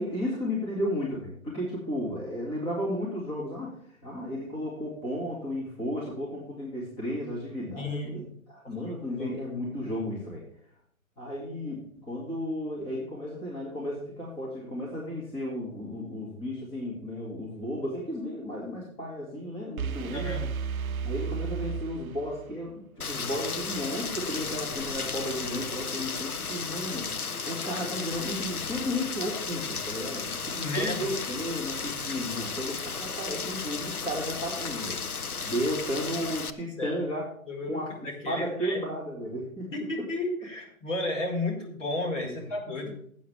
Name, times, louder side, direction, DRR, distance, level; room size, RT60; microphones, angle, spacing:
voice 1, 0.0-10.4 11.2-20.5 21.0-35.0 35.4-37.2 37.7-38.0 38.3-39.7 40.0-40.1 42.2-42.5 42.9-43.0, equal, 10° left, -5 dB, 2.3 m, -34 dB
voice 2, 7.7-8.2 8.8-9.3 20.1-20.5 30.6-31.1 36.8-37.1 37.5-38.8 39.7-42.9, left 2 dB, 55° left, -1 dB, 5.2 m, -33 dB
sound 1, 19.8-22.7, right 6 dB, 75° right, 0.6 m, -33 dB
Rain, 23.0-36.5, left 5 dB, 90° left, 1.1 m, -34 dB
16.5 x 8.3 x 3.5 m, 0.62 s
figure-of-eight pair, 150°, 43 cm